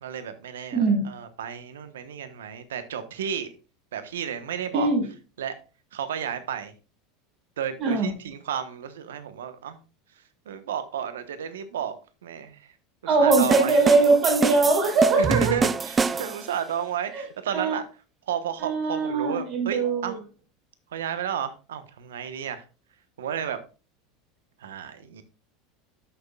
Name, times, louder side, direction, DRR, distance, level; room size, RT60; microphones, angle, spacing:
voice 1, 0.0-3.5 3.9-4.9 5.4-5.5 5.9-6.7 7.6-9.8 10.5-11.9 12.2-12.6 13.2-13.8 15.2-17.9 18.3-20.2 20.9-22.6 23.2-23.6 24.6-25.2, right 8 dB, 80° right, 1.1 m, -32 dB
voice 2, 0.7-1.0 4.7-5.0 7.8-8.1 13.0-15.6 17.1-17.2 17.5-17.7 18.6-20.2, right 3 dB, 50° right, 5.0 m, -21 dB
sound 1, 13.3-16.5, right 5 dB, 25° right, 0.4 m, -26 dB
12.5 x 6.7 x 2.4 m
hypercardioid pair, 90°, 0 cm